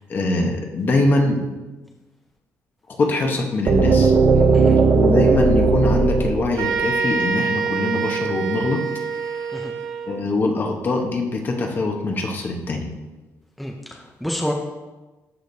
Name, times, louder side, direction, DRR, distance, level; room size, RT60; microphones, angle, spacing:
voice 1, 0.1-1.4 3.0-4.1 4.9-8.8 10.1-12.8, left 2 dB, 35° left, 2 dB, 1.0 m, -22 dB
sound 1, 3.7-7.6, right 4 dB, 45° right, 0.5 m, -17 dB
sound 2, 6.6-10.2, right 5 dB, 70° right, 0.9 m, -26 dB
voice 2, 13.6-14.5, equal, ahead, 1 dB, 0.6 m, -28 dB
13.0 x 5.0 x 2.7 m, 1.2 s
cardioid pair, 150°, 6 cm